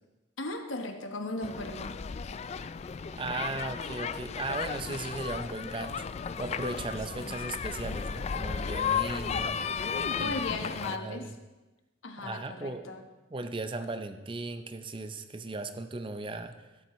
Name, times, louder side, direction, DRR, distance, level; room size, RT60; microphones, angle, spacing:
voice 1, 0.4-2.0 7.2-7.4 10.2-11.3 12.0-13.0, left 2 dB, 85° left, 6 dB, 1.1 m, -37 dB
sound 1, 1.4-11.0, left 6 dB, 35° left, 0.3 m, -34 dB
voice 2, 3.2-6.1 6.4-9.6 10.2-10.4 10.8-11.3 12.2-12.9 13.3-16.7, right 2 dB, 25° right, 9 dB, 0.5 m, -37 dB
12.5 x 12.0 x 3.1 m, 1.1 s
head